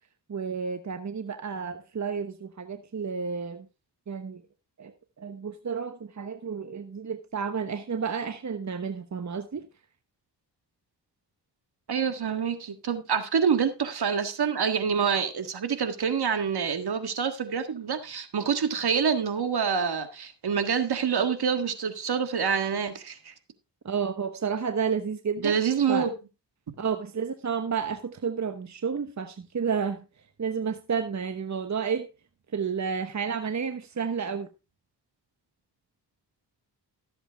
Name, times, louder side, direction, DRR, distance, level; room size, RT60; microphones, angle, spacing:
voice 1, 0.3-3.7 4.1-4.4 4.8-9.6 23.8-25.6 25.9-26.1 26.8-30.0 30.4-32.1 32.5-34.5, right 6 dB, 40° right, 1.1 m, -31 dB
voice 2, 11.9-23.3 25.4-26.1, right 6 dB, 65° right, 1.7 m, -26 dB
13.0 x 7.9 x 3.5 m
cardioid pair, 55°, 42 cm